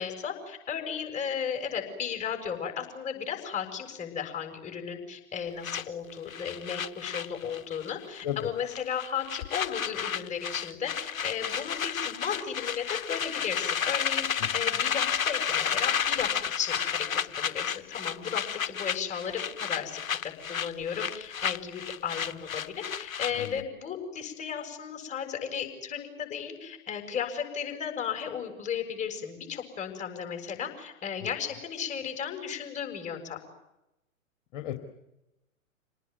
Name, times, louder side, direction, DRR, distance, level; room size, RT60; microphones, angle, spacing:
voice 1, 0.0-33.4, left 7 dB, 15° left, 4 dB, 7.0 m, -35 dB
sound 1, 5.6-8.4 8.7-23.6, left 8 dB, 75° left, 1.1 m, -31 dB
voice 2, 8.2-8.5 14.4-14.5 23.4-23.7 34.5-34.8, left 10 dB, 40° left, 6 dB, 2.8 m, -34 dB
28.0 x 19.5 x 9.6 m, 0.91 s
figure-of-eight pair, 115°, 41 cm